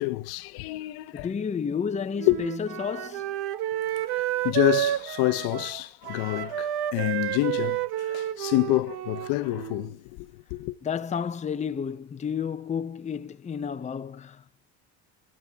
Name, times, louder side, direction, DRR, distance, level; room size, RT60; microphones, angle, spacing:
voice 1, 0.0-1.3 2.3-2.4 4.1-10.7, left 20 dB, 70° left, 1.0 m, -28 dB
voice 2, 1.1-3.4 10.8-14.4, left 7 dB, 20° left, 0.7 m, -31 dB
Wind instrument woodwind instrument, 2.2-9.9, right 13 dB, 75° right, 1.1 m, -30 dB
23.0 x 13.5 x 3.6 m
cardioid pair, 120°, 39 cm